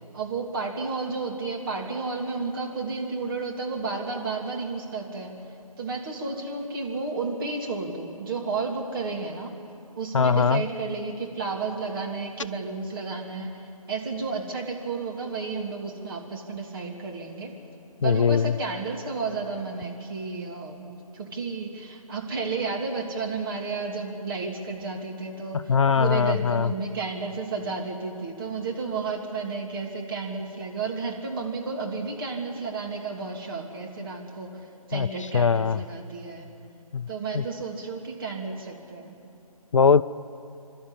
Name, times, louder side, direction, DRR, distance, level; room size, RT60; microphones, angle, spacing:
voice 1, 0.1-9.6 9.9-17.5 18.0-20.9 21.1-36.5 37.1-39.2, right 4 dB, 35° right, 0 dB, 2.9 m, -32 dB
voice 2, 10.1-10.6 18.0-18.5 25.5-26.7 34.9-35.1 35.3-35.8 36.9-37.1 37.3-37.4 39.7-40.0, left 6 dB, 55° left, 15 dB, 0.5 m, -21 dB
28.0 x 12.5 x 10.0 m, 2.6 s
figure-of-eight pair, 145°, 19 cm